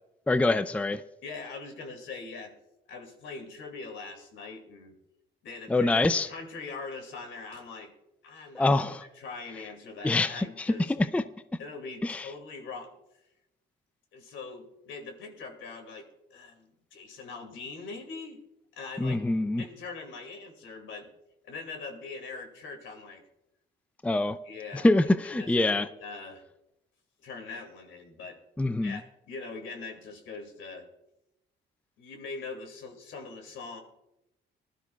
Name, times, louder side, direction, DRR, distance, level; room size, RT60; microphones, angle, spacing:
voice 1, 0.3-1.0 5.7-6.3 8.5-9.0 10.0-11.2 12.0-12.3 19.0-19.6 24.0-24.4 24.8-25.9 28.6-29.0, left 2 dB, 5° left, 13 dB, 0.4 m, -25 dB
voice 2, 1.2-2.5 2.9-5.0 5.4-7.9 8.2-10.9 11.6-12.9 14.1-18.4 18.7-19.2 19.6-21.1 21.4-23.2 24.4-24.9 25.2-26.4 27.2-28.4 28.8-30.9 32.0-33.8, left 4 dB, 75° left, 5 dB, 2.4 m, -42 dB
19.5 x 12.5 x 2.4 m, 0.89 s
cardioid pair, 90°, 20 cm